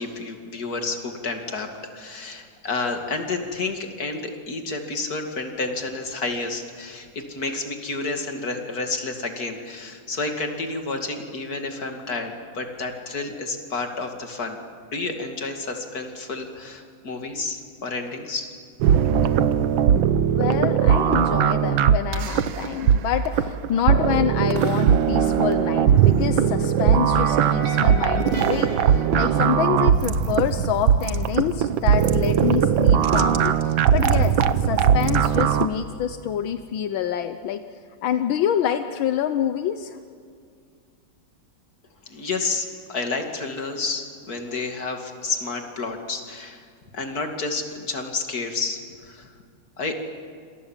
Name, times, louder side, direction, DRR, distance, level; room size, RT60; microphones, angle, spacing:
voice 1, 0.0-14.6 14.9-18.5 42.1-46.6 46.9-49.3 49.8-49.9, left 3 dB, 50° left, 4 dB, 2.9 m, -30 dB
sound 1, 18.8-35.7, right 8 dB, 75° right, 1.7 m, -19 dB
voice 2, 20.3-37.6 38.0-40.0, left 9 dB, 80° left, 9 dB, 1.6 m, -27 dB
sound 2, 24.0-29.5, right 1 dB, 40° right, 5.4 m, -36 dB
28.5 x 27.0 x 7.4 m, 2.2 s
omnidirectional pair, 2.2 m